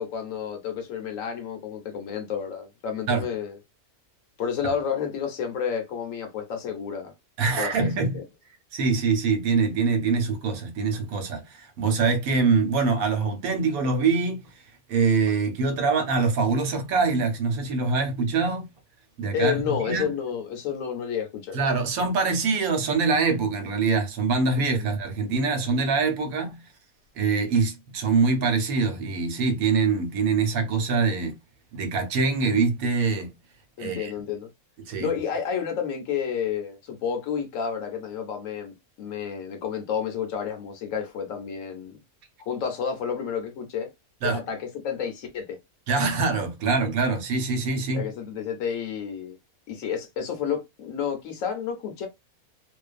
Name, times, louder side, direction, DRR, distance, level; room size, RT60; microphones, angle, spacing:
voice 1, 0.0-3.6 4.4-7.1 7.6-8.2 19.3-21.6 24.6-24.9 33.8-34.5 35.0-42.0 42.4-43.9 44.2-45.6 47.9-49.4 49.7-52.1, left 7 dB, 70° left, 0.9 m, -30 dB
voice 2, 7.4-8.2 8.7-14.4 14.9-18.6 19.2-20.1 21.5-26.6 27.2-31.3 31.7-33.3 33.8-34.1 34.9-35.1 44.2-44.4 45.9-48.1, right 4 dB, 75° right, 1.1 m, -24 dB
2.5 x 2.3 x 2.3 m
omnidirectional pair, 1.6 m